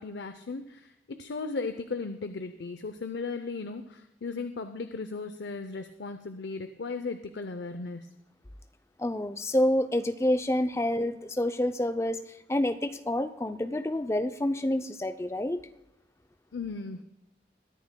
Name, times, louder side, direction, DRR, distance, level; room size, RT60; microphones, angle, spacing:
voice 1, 0.0-8.1 16.5-17.0, left 4 dB, 75° left, 9 dB, 0.6 m, -36 dB
voice 2, 9.0-15.6, left 1 dB, 15° left, 9 dB, 0.4 m, -28 dB
22.0 x 10.5 x 2.2 m, 0.94 s
head